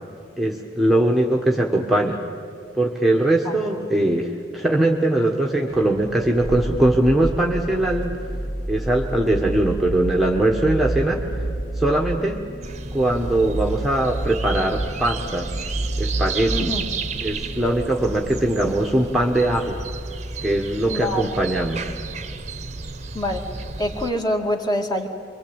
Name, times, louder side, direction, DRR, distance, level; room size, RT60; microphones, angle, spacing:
voice 1, 0.4-2.2 2.7-8.1 8.7-11.2 11.8-12.4 12.9-15.5 16.0-16.7 17.2-19.8 20.4-21.9, right 1 dB, ahead, 0 dB, 1.4 m, -21 dB
sound 1, 5.7-17.8, right 1 dB, 65° left, 4.4 m, -30 dB
sound 2, 12.6-24.1, right 3 dB, 40° right, 1.0 m, -32 dB
voice 2, 16.5-16.8 20.9-21.4 23.1-23.5 23.8-25.1, left 1 dB, 20° left, 3 dB, 2.4 m, -25 dB
27.5 x 24.0 x 8.9 m, 2.3 s
head